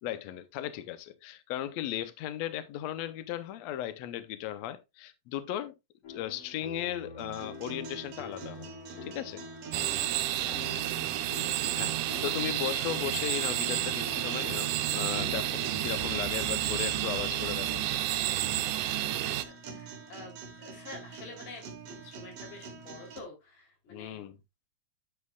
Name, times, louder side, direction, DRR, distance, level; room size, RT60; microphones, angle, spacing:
voice 1, 0.0-5.7 6.1-8.7 9.0-9.4 11.2-11.5 11.8-17.8 23.9-24.4, left 12 dB, 85° left, 1.5 m, -36 dB
sound 1, 6.0-17.9, left 3 dB, 45° left, 3.5 m, -46 dB
sound 2, 7.2-23.2, right 6 dB, 55° right, 2.0 m, -44 dB
sound 3, 9.7-19.4, right 14 dB, 80° right, 1.9 m, -31 dB
voice 2, 10.4-11.3 18.8-24.3, left 2 dB, 60° left, 4.9 m, -49 dB
10.5 x 7.3 x 2.4 m
omnidirectional pair, 4.2 m